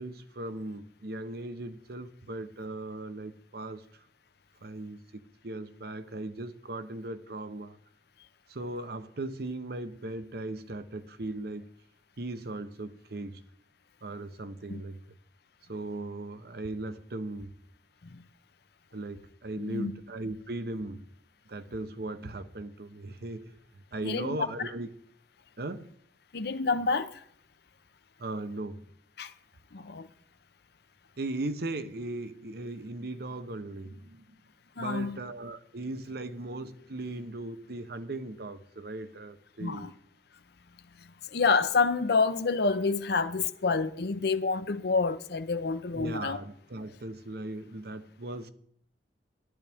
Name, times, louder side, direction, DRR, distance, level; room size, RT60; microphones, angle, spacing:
voice 1, 0.0-3.9 4.6-7.8 8.5-11.7 12.2-13.4 14.0-15.0 15.7-17.6 18.9-21.1 21.5-23.6 23.9-24.9 25.6-25.9 28.2-28.9 31.2-34.4 34.8-39.9 45.9-48.5, right 2 dB, 60° right, 0.8 m, -38 dB
voice 2, 19.6-19.9 24.0-24.4 26.3-27.2 29.2-29.3 29.7-30.1 34.8-35.2 39.6-39.9 41.3-46.4, left 4 dB, 65° left, 0.7 m, -28 dB
15.0 x 12.0 x 3.5 m
head